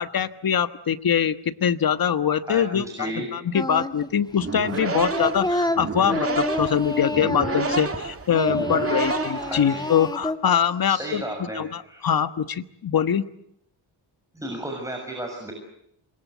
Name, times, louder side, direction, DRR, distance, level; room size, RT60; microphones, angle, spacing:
voice 1, 0.0-11.2 11.5-13.2, left 8 dB, 50° left, 12 dB, 1.4 m, -23 dB
voice 2, 2.4-3.3 9.4-9.9 10.8-12.1 14.3-15.5, right 1 dB, 5° right, 2 dB, 6.9 m, -33 dB
Singing, 3.5-4.1 4.4-8.0 8.3-10.4, left 1 dB, 10° left, 2.0 m, -28 dB
sound 1, 4.3-10.1, right 4 dB, 30° right, 2.3 m, -30 dB
27.5 x 22.0 x 8.3 m, 0.74 s
cardioid pair, 105°, 45 cm